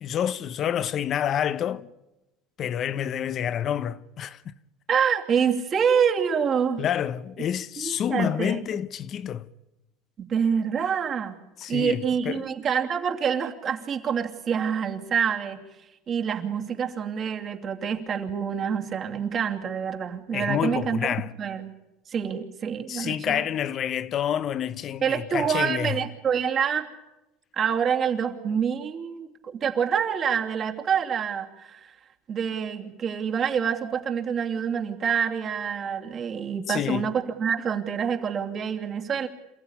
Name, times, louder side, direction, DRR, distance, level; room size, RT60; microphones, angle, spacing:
voice 1, 0.0-1.9 2.6-4.5 6.8-9.5 11.6-12.5 20.3-21.3 22.9-26.0 36.7-37.1, left 9 dB, 45° left, 1.0 m, -28 dB
voice 2, 4.9-6.8 7.8-8.6 10.2-11.4 11.7-15.6 16.1-21.1 21.4-21.7 22.1-23.5 25.0-26.9 27.6-31.9 32.3-39.3, right 7 dB, 40° right, 2.8 m, -26 dB
28.0 x 15.0 x 10.0 m
supercardioid pair, 115°, 0 cm